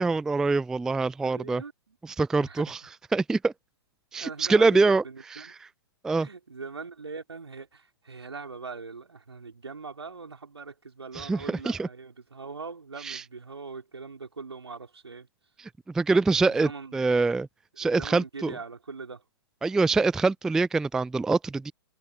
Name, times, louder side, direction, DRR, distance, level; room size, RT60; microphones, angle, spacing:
voice 1, 0.0-1.6 2.0-2.8 3.1-3.5 4.1-5.0 5.3-5.5 6.0-6.3 11.2-11.9 13.0-13.2 15.6-17.5 17.8-18.6 19.6-21.7, right 3 dB, 5° right, 0.3 m, -24 dB
voice 2, 1.2-2.0 2.4-2.7 4.2-5.6 6.2-15.3 16.5-17.1 17.8-19.2, right 4 dB, 75° right, 4.8 m, -41 dB
figure-of-eight pair, 110°, 14 cm